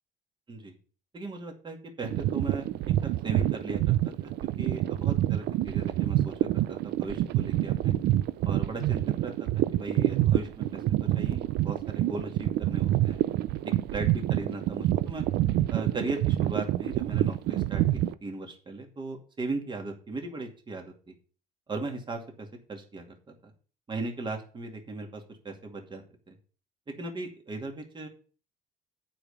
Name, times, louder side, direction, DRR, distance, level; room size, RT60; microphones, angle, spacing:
voice 1, 1.1-2.7 3.0-4.3 4.6-7.9 8.4-10.8 11.1-13.2 13.6-15.2 15.7-21.1 21.7-23.0 23.4-23.5 23.9-26.4 27.0-28.1, right 3 dB, 30° right, 3 dB, 2.4 m, -37 dB
sound 1, 2.0-18.1, right 14 dB, 75° right, 0.5 m, -27 dB
8.6 x 5.2 x 7.2 m, 0.39 s
cardioid pair, 110°, 17 cm